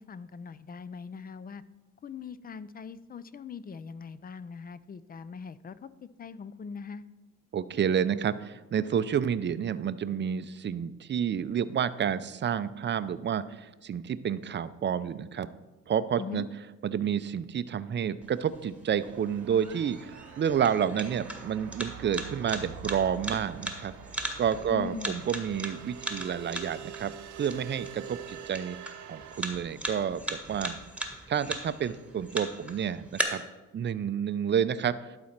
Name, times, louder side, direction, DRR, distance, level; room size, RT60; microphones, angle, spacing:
voice 1, 0.0-1.6 2.0-5.9 6.2-7.0 16.2-16.4 24.7-25.2, left 6 dB, 30° left, 16 dB, 0.4 m, -41 dB
voice 2, 7.5-15.5 15.9-16.4 16.8-23.9 24.4-30.8 31.3-33.4 33.7-35.0, right 8 dB, 35° right, 14 dB, 0.5 m, -30 dB
sound 1, 18.2-33.2, right 1 dB, 5° right, 1.4 m, -39 dB
sound 2, 19.0-29.4, right 9 dB, 80° right, 0.8 m, -45 dB
11.5 x 4.2 x 5.9 m, 1.1 s
cardioid pair, 90°, 30 cm